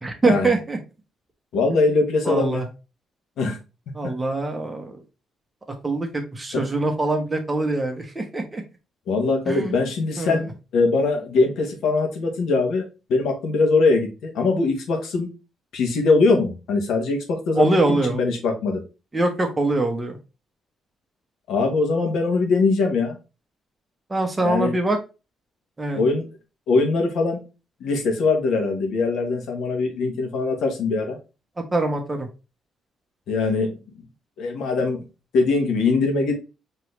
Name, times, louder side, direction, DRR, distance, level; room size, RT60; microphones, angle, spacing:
voice 1, 0.0-0.8 2.2-2.7 3.9-5.0 5.8-8.6 9.5-9.7 10.2-10.4 17.6-18.2 19.1-20.2 24.1-25.0 25.8-26.0 31.7-32.3, right 2 dB, 20° right, 4 dB, 1.1 m, -23 dB
voice 2, 1.5-2.7 3.4-3.6 6.5-6.6 9.1-15.3 15.7-18.8 21.5-23.2 24.4-24.7 25.9-26.3 26.7-27.4 27.8-31.2 33.3-33.7 34.4-35.0 35.3-36.3, left 3 dB, 75° left, 4 dB, 1.3 m, -22 dB
4.5 x 3.1 x 3.3 m, 0.29 s
cardioid pair, 90°, 0 cm